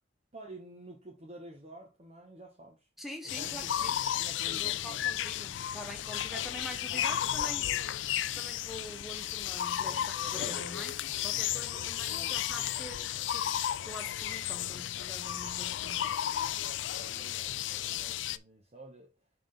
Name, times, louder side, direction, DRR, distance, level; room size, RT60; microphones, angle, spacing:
voice 1, 0.3-2.8 3.2-5.2 9.8-10.7 11.5-12.4 16.3-16.6 17.0-19.1, equal, 35° right, 1.1 m, -49 dB
voice 2, 3.0-4.0 4.5-7.7 8.3-10.9 11.2-13.5 13.8-16.1, equal, ahead, 0.9 m, -45 dB
sound 1, 3.3-18.4, left 11 dB, 85° left, 0.4 m, -33 dB
5.5 x 3.8 x 5.2 m
head